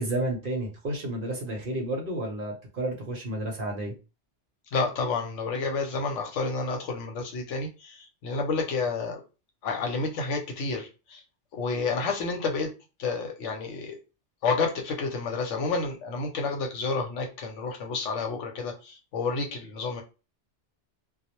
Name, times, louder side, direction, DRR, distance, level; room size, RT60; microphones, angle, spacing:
voice 1, 0.0-3.9, right 1 dB, 55° right, 0.7 m, -31 dB
voice 2, 4.7-9.2 9.6-11.2 11.5-12.7 13.0-14.0 14.4-20.0, left 4 dB, 85° left, 0.9 m, -30 dB
2.2 x 2.0 x 2.8 m
omnidirectional pair, 1.2 m